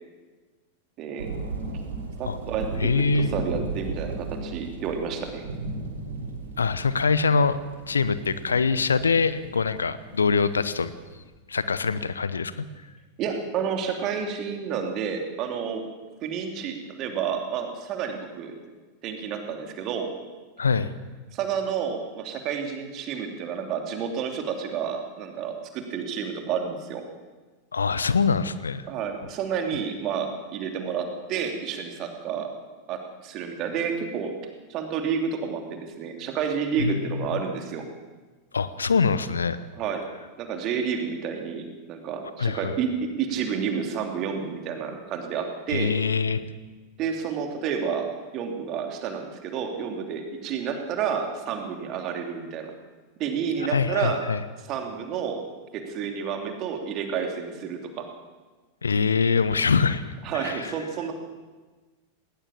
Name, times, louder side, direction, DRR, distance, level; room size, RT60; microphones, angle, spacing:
voice 1, 1.0-1.3 2.2-5.4 13.2-15.8 16.2-18.5 19.0-20.1 21.3-27.0 28.9-32.5 32.9-34.4 34.7-37.8 39.7-40.0 40.4-45.9 47.0-48.1 48.3-52.7 53.2-54.2 54.7-55.4 55.7-58.1 60.2-61.1, right 7 dB, 35° right, 4 dB, 3.0 m, -30 dB
sound 1, 1.2-11.2, right 3 dB, 65° right, 3.4 m, -36 dB
voice 2, 2.8-3.3 6.6-7.6 7.9-10.9 11.5-12.6 20.6-20.9 27.7-28.9 36.8-37.4 38.5-39.6 42.4-42.7 45.7-46.4 53.7-54.4 58.8-60.0 60.3-60.7, left 5 dB, 75° left, 15 dB, 0.9 m, -24 dB
19.0 x 19.0 x 7.3 m, 1.3 s
figure-of-eight pair, 90°, 0 cm